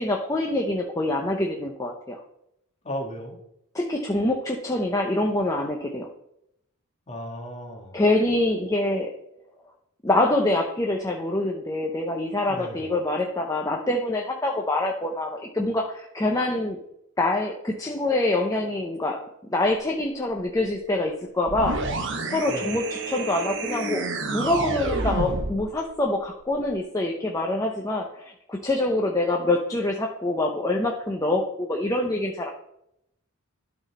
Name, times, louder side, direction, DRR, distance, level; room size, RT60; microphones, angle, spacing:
voice 1, 0.0-2.2 3.7-6.1 7.9-9.1 10.0-16.8 17.2-19.2 19.5-21.8 22.3-24.1 24.3-32.5, left 2 dB, 15° left, 0 dB, 0.7 m, -25 dB
voice 2, 2.8-3.4 7.1-8.0 12.4-12.8 22.5-22.7, equal, 30° left, 0 dB, 1.8 m, -35 dB
sound 1, 21.5-25.6, right 3 dB, 55° right, 1.0 m, -29 dB
12.5 x 4.1 x 4.1 m, 0.78 s
head